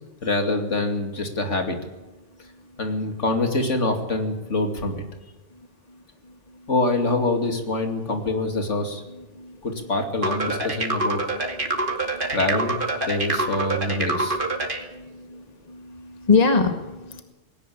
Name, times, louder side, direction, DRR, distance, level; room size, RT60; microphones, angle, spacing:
voice 1, 0.2-1.8 2.8-5.0 6.7-9.0 9.6-11.2 12.3-12.8 13.1-14.4, left 2 dB, 70° left, 5 dB, 2.9 m, -25 dB
voice 2, 5.9-6.7 7.8-8.1 9.1-9.9 10.6-11.7 12.1-12.3 13.0-13.9 14.3-17.2, left 4 dB, 30° left, 6 dB, 2.0 m, -28 dB
sound 1, 10.2-14.8, right 2 dB, 45° right, 2.5 m, -26 dB
19.0 x 18.0 x 8.6 m, 1.1 s
omnidirectional pair, 1.3 m